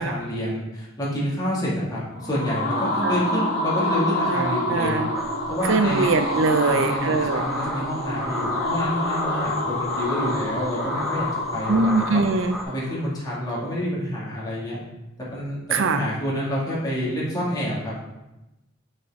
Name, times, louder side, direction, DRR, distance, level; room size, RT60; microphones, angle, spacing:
voice 1, 0.0-5.1 5.5-6.1 6.6-12.2 12.6-14.8 15.3-18.1, equal, 20° left, -7 dB, 2.0 m, -28 dB
sound 1, 2.1-13.0, left 1 dB, 40° left, 1.9 m, -28 dB
voice 2, 4.3-5.1 5.7-7.4 11.7-12.6 15.7-16.0, right 3 dB, 65° right, 8 dB, 0.4 m, -22 dB
sound 2, 5.1-12.6, equal, ahead, 0.5 m, -34 dB
6.1 x 5.4 x 3.5 m, 0.98 s
head